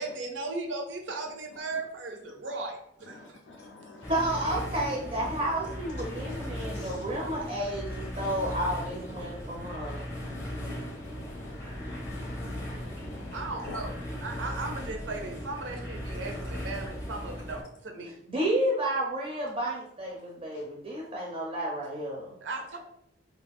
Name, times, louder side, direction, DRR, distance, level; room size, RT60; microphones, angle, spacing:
voice 1, 0.0-3.4 13.3-13.9 14.2-18.1 22.4-22.8, right 3 dB, 85° right, 3 dB, 0.6 m, -37 dB
voice 2, 3.0-4.1 6.5-7.0 7.9-8.4 9.1-13.9 14.2-14.5 20.5-20.6, left 3 dB, 75° left, -1 dB, 0.4 m, -48 dB
sound 1, 4.0-17.6, equal, 15° left, 0.6 m, -37 dB
voice 3, 4.1-10.1 18.3-22.4, right 1 dB, 30° right, -2 dB, 0.4 m, -31 dB
2.3 x 2.3 x 3.4 m, 0.72 s
head